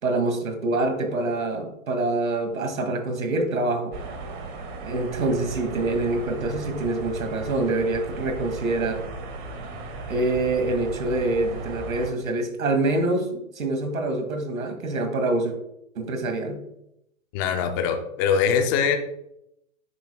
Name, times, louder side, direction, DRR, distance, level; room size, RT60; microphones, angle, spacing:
voice 1, 0.0-4.0 4.8-9.1 10.1-15.6 15.9-16.6, right 2 dB, 75° right, 5 dB, 2.4 m, -25 dB
sound 1, 3.9-12.1, right 3 dB, 35° right, 2.1 m, -36 dB
voice 2, 17.3-19.0, left 7 dB, 15° left, 6 dB, 0.5 m, -22 dB
10.5 x 9.6 x 2.3 m, 0.80 s
hypercardioid pair, 145°, 41 cm